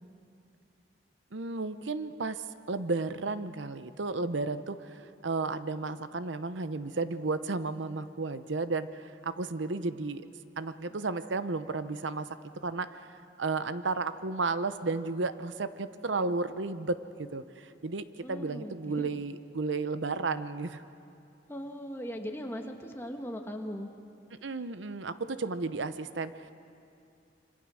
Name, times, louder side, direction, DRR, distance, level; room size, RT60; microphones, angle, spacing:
voice 1, 1.3-2.4 2.7-10.3 10.6-12.3 12.6-20.8 24.4-26.5, right 3 dB, 80° right, 12 dB, 0.8 m, -33 dB
voice 2, 18.2-19.1 21.5-23.9, equal, 10° left, 3 dB, 1.5 m, -39 dB
27.0 x 25.5 x 6.3 m, 2.5 s
head